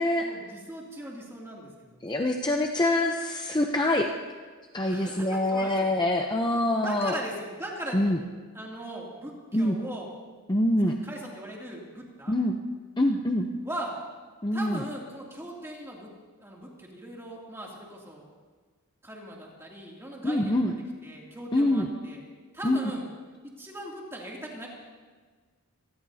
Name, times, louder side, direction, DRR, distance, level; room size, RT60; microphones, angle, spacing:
voice 1, 0.1-2.3 4.8-5.9 6.5-8.0 8.5-10.1 10.9-12.4 13.6-13.9 14.5-16.1 16.4-18.2 19.0-20.5 21.0-22.2 22.5-23.0 23.4-24.7, right 1 dB, 10° right, -3 dB, 2.7 m, -39 dB
voice 2, 2.0-4.1 4.7-7.1 7.9-8.2 9.5-9.8 10.5-11.0 12.3-12.6 13.0-13.5 14.4-14.8 20.2-20.8 21.5-21.9 22.6-22.8, left 1 dB, 20° left, 2 dB, 0.7 m, -25 dB
26.5 x 19.5 x 2.8 m, 1.5 s
head